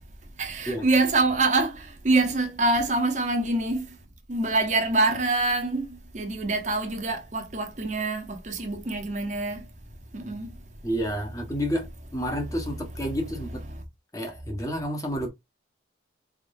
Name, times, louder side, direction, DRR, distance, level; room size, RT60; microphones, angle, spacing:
voice 1, 0.4-4.0 4.3-9.7 10.1-10.5 13.7-13.8, right 2 dB, 40° right, 0.9 m, -25 dB
voice 2, 10.8-13.6 14.1-15.3, equal, 20° left, 1.0 m, -30 dB
4.2 x 3.6 x 2.6 m
head